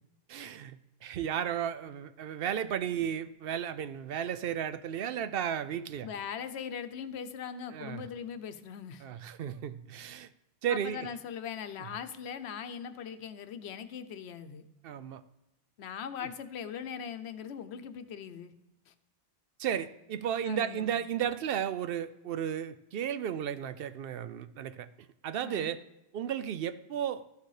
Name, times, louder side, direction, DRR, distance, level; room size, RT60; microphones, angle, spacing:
voice 1, 0.3-6.1 7.7-8.0 9.0-10.3 10.6-11.1 14.8-15.2 19.6-24.9 25.2-25.8 26.1-27.2, right 9 dB, 70° right, 13 dB, 0.7 m, -34 dB
voice 2, 6.0-9.0 10.7-14.6 15.8-18.5 18.9-19.0 20.5-21.0 25.4-25.7, left 7 dB, 90° left, 11 dB, 1.0 m, -40 dB
13.0 x 6.6 x 4.8 m, 0.93 s
omnidirectional pair, 1.1 m